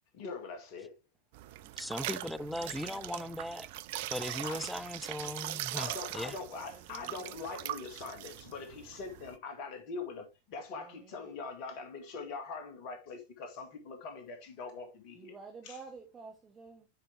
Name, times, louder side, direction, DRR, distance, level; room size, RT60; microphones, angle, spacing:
voice 1, 0.1-0.9 4.4-4.7 5.2-5.4 5.8-15.3 15.6-15.8, left 4 dB, 45° left, 2.1 m, -43 dB
sound 1, 1.3-9.4, right 15 dB, 50° right, 0.5 m, -41 dB
voice 2, 1.8-3.7 4.1-6.4, left 1 dB, 5° left, 0.5 m, -38 dB
voice 3, 2.4-3.1 5.2-7.4 10.7-11.3 15.1-16.9, right 4 dB, 20° right, 1.4 m, -52 dB
9.7 x 5.2 x 3.4 m
figure-of-eight pair, 90°, 0 cm